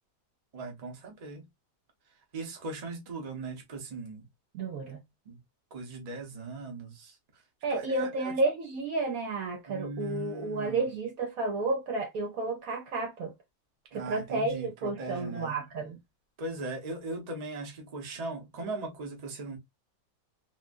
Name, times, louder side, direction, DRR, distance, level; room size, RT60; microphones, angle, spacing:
voice 1, 0.5-1.4 2.3-4.2 5.3-5.4 5.7-7.1 7.7-8.3 9.7-10.8 13.9-15.5 16.4-19.6, right 2 dB, 30° right, 0.8 m, -39 dB
voice 2, 4.5-5.0 7.6-13.3 13.9-16.0, right 3 dB, 65° right, 1.0 m, -31 dB
3.7 x 2.2 x 2.4 m
omnidirectional pair, 1.9 m